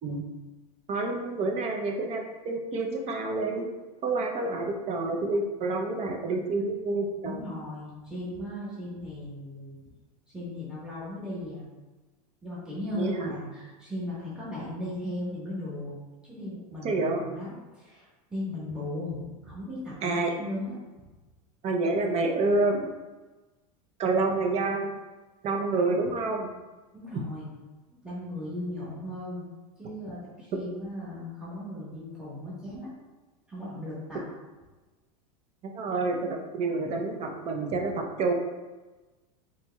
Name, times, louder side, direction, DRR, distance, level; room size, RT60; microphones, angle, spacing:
voice 1, 0.9-3.7 4.0-7.4 13.0-13.3 16.8-17.2 20.0-20.3 21.6-22.9 24.0-24.9 25.4-26.5 35.6-38.3, right 3 dB, 35° right, 2 dB, 0.6 m, -28 dB
voice 2, 7.2-9.8 10.3-11.6 12.4-15.9 16.2-20.7 26.9-27.5 28.0-29.4 29.8-32.9 33.5-34.2, left 1 dB, 5° right, -9 dB, 1.4 m, -37 dB
4.2 x 3.0 x 2.3 m, 1.2 s
supercardioid pair, 120°, 20 cm